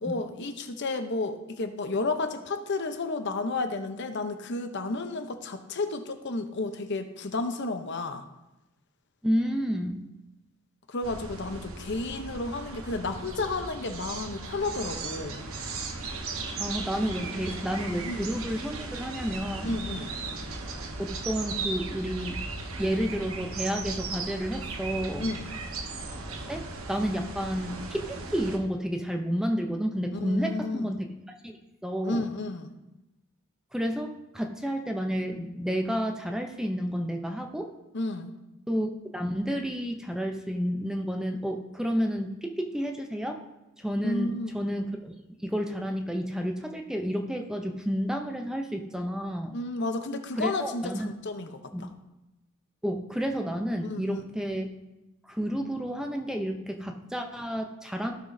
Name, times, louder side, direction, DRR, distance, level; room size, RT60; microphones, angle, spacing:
voice 1, 0.0-8.2 10.9-15.4 18.0-18.2 19.6-20.2 25.2-25.5 30.1-30.9 32.0-32.7 37.9-38.3 44.0-44.5 49.5-51.9 53.8-54.2, left 3 dB, 55° left, 7 dB, 0.7 m, -32 dB
voice 2, 9.2-10.0 16.6-19.8 21.0-22.4 22.8-25.2 26.5-31.1 31.4-31.6 31.8-32.3 33.7-37.7 38.7-43.4 43.8-45.1 45.4-49.5 50.4-51.1 51.7-51.9 52.8-54.7 55.3-58.1, equal, 5° right, 3 dB, 0.6 m, -30 dB
sound 1, 11.0-28.6, right 3 dB, 75° right, 1.1 m, -37 dB
15.5 x 6.1 x 2.7 m, 0.98 s
head